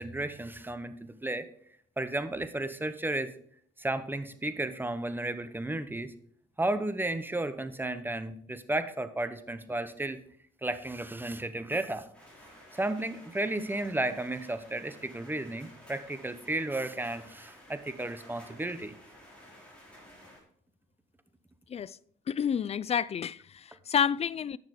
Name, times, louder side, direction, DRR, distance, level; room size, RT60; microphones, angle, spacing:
voice 1, 0.0-1.4 2.0-3.3 3.8-6.1 6.6-10.2 10.6-12.1 12.7-18.9, right 2 dB, 10° right, 0.9 m, -33 dB
sound 1, 12.1-20.4, equal, 5° left, 4.1 m, -53 dB
voice 2, 22.3-24.6, left 8 dB, 30° left, 0.3 m, -29 dB
10.0 x 6.5 x 4.9 m
cardioid pair, 90°, 20 cm